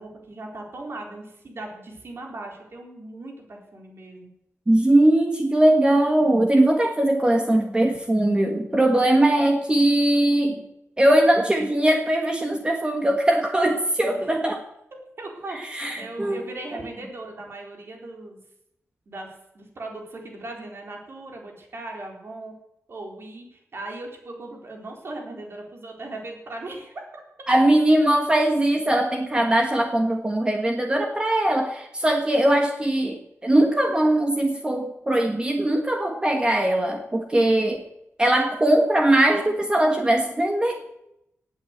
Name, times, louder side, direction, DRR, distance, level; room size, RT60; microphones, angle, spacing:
voice 1, 0.0-4.3 14.1-14.3 15.2-18.4 19.1-22.5 22.9-27.2, right 2 dB, 55° right, 1 dB, 3.9 m, -38 dB
voice 2, 4.7-10.6 11.0-14.6 15.5-16.4 16.7-16.8 27.5-37.8 38.2-40.8, right 1 dB, 20° right, 3 dB, 1.6 m, -20 dB
18.0 x 8.3 x 8.1 m, 0.82 s
wide cardioid pair, 125°, 5 cm